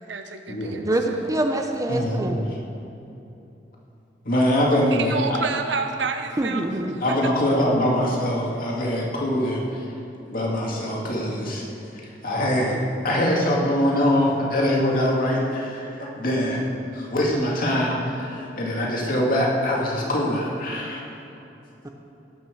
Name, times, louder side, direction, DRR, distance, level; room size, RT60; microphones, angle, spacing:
voice 1, 0.1-1.2 4.7-6.7 7.1-7.3, right 4 dB, 90° right, 6 dB, 1.0 m, -29 dB
voice 2, 0.8-2.4 6.4-7.0 21.8-21.9, right 1 dB, 20° right, 4 dB, 0.7 m, -25 dB
voice 3, 1.9-2.4 4.2-5.1 7.0-9.8 10.3-11.6 12.2-12.8 13.0-16.6 16.9-21.0, left 1 dB, 50° left, -3 dB, 2.4 m, -23 dB
17.5 x 6.1 x 6.3 m, 2.9 s
head